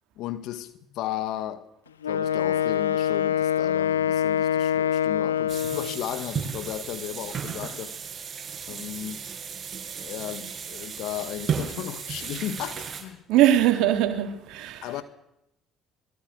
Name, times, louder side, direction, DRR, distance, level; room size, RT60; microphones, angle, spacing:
voice 1, 0.2-1.7 2.1-8.0 8.7-9.2 10.0-13.2 14.8-15.0, left 12 dB, 65° left, 1.8 m, -35 dB
Wind instrument woodwind instrument, 2.0-6.1, left 9 dB, 90° left, 0.8 m, -25 dB
sound 1, 5.5-13.0, right 6 dB, 40° right, 7.4 m, -34 dB
voice 2, 13.3-14.9, right 12 dB, 65° right, 3.4 m, -21 dB
24.0 x 22.0 x 7.0 m
hypercardioid pair, 55°, 0 cm